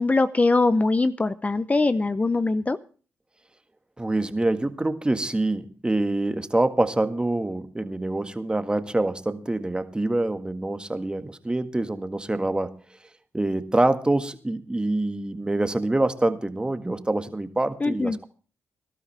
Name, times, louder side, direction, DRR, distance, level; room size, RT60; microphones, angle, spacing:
voice 1, 0.0-2.8 17.8-18.2, left 3 dB, 25° left, 13 dB, 0.7 m, -22 dB
voice 2, 4.0-12.8 13.3-18.3, right 2 dB, 15° right, 9 dB, 1.7 m, -25 dB
19.0 x 12.0 x 3.4 m, 0.39 s
cardioid pair, 60°, 5 cm